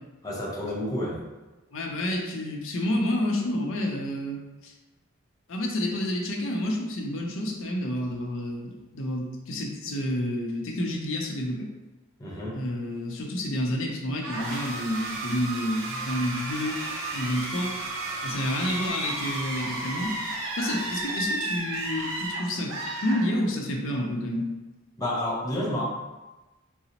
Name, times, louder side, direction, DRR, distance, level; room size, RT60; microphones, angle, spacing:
voice 1, 0.2-1.2 12.2-12.6 25.0-25.8, left 1 dB, 15° left, -6 dB, 0.6 m, -30 dB
voice 2, 1.7-4.4 4.6-4.7 5.5-11.7 12.5-16.8 17.1-17.7 18.2-20.1 20.5-24.5, left 1 dB, 65° left, 0 dB, 0.5 m, -29 dB
sound 1, 14.2-23.8, right 2 dB, 70° right, 0.6 m, -33 dB
3.8 x 2.0 x 2.8 m, 1.1 s
head